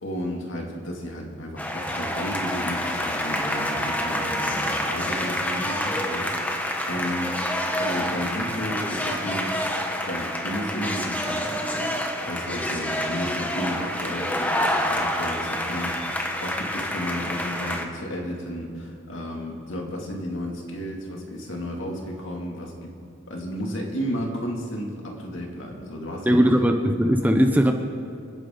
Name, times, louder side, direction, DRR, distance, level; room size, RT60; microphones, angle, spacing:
voice 1, 0.0-7.3 7.8-9.5 10.1-11.9 12.2-22.9 23.3-26.4, equal, 60° left, 0 dB, 2.6 m, -33 dB
sound 1, 1.6-17.8, left 1 dB, 5° left, 1.1 m, -28 dB
voice 2, 26.3-27.7, equal, 10° right, 5 dB, 0.7 m, -19 dB
29.0 x 10.5 x 3.9 m, 2.6 s
head